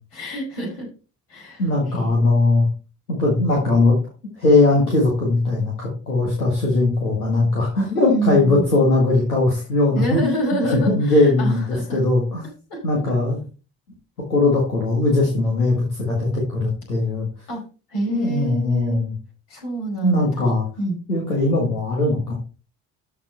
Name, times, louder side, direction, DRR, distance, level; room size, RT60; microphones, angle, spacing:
voice 1, 0.1-0.9 1.3-2.1 7.9-8.7 9.9-12.0 12.7-12.8 17.5-17.6 17.9-19.0 19.5-20.4 20.8-21.0, right 2 dB, 65° left, -2 dB, 5.3 m, -27 dB
voice 2, 1.6-2.7 3.1-3.9 4.4-10.4 10.9-12.4 12.8-13.4 14.3-17.3 18.1-19.1 20.0-20.6 21.1-22.3, left 2 dB, 85° left, -2 dB, 1.7 m, -19 dB
13.0 x 4.7 x 4.2 m, 0.34 s
figure-of-eight pair, 40°, 43 cm